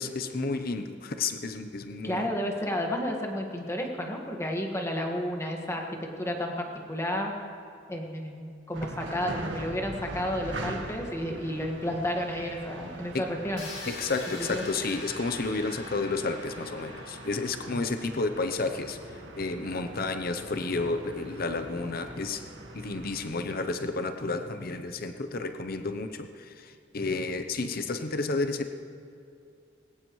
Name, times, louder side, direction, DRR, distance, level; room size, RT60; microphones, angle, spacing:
voice 1, 0.0-2.3 13.1-13.2 13.9-19.0 19.4-22.5 22.7-28.7, left 3 dB, 55° left, 7 dB, 0.7 m, -31 dB
voice 2, 2.0-5.8 6.2-7.3 7.9-13.7 14.4-14.6, equal, 15° left, 1 dB, 1.7 m, -31 dB
sound 1, 8.7-23.3, right 1 dB, 80° right, 1.8 m, -42 dB
sound 2, 13.6-19.4, left 2 dB, 70° left, 2.6 m, -44 dB
21.0 x 17.5 x 3.2 m, 2.5 s
head